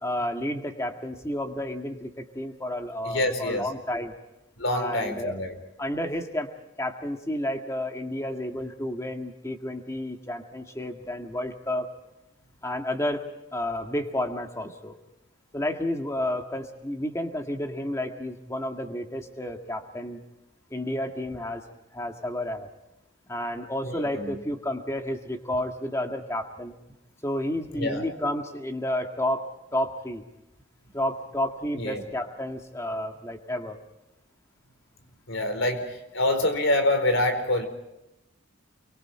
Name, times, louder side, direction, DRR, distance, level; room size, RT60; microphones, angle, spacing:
voice 1, 0.0-4.1 4.7-5.4 5.8-6.5 6.8-11.9 12.6-13.2 13.5-15.0 15.5-20.2 20.7-21.7 21.9-22.7 23.3-26.7 27.2-30.2 30.9-33.8, left 1 dB, 15° left, 4 dB, 1.9 m, -31 dB
voice 2, 3.0-3.7 4.6-5.5 23.8-24.4 27.7-28.0 31.8-32.0 35.3-37.7, left 1 dB, 75° left, 7 dB, 4.5 m, -26 dB
29.5 x 24.0 x 4.4 m, 0.90 s
head